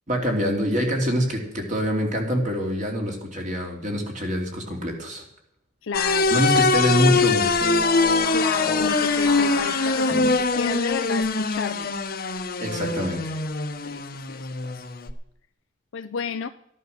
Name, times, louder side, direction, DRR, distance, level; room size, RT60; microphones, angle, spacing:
voice 1, 0.1-5.2 6.3-7.6 12.6-13.3, equal, 40° right, 2 dB, 2.9 m, -25 dB
voice 2, 5.8-6.4 8.3-11.9 13.8-14.8 15.9-16.5, left 6 dB, 75° left, 9 dB, 0.5 m, -32 dB
sound 1, 5.9-15.1, left 4 dB, 50° left, 1.0 m, -23 dB
sound 2, 6.4-10.9, left 2 dB, 15° left, 1.1 m, -34 dB
13.0 x 11.0 x 6.6 m, 0.77 s
head